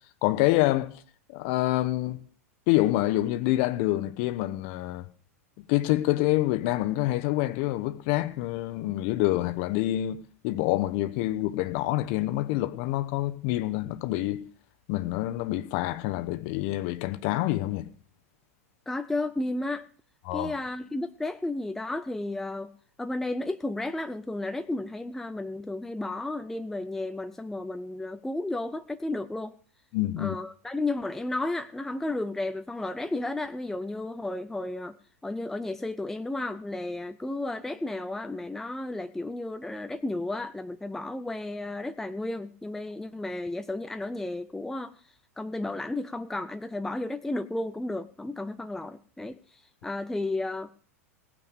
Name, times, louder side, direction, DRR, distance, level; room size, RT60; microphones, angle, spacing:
voice 1, 0.2-1.0 1.3-2.2 2.7-5.0 5.7-10.2 10.4-14.4 14.9-17.9 20.3-20.5 29.9-30.4, left 16 dB, 45° left, 1.1 m, -27 dB
voice 2, 18.9-19.9 20.3-22.7 23.0-29.5 30.2-35.0 35.2-44.9 45.4-49.4 49.8-50.7, left 2 dB, 5° left, 0.6 m, -33 dB
17.5 x 6.2 x 8.2 m
figure-of-eight pair, 90°, 8 cm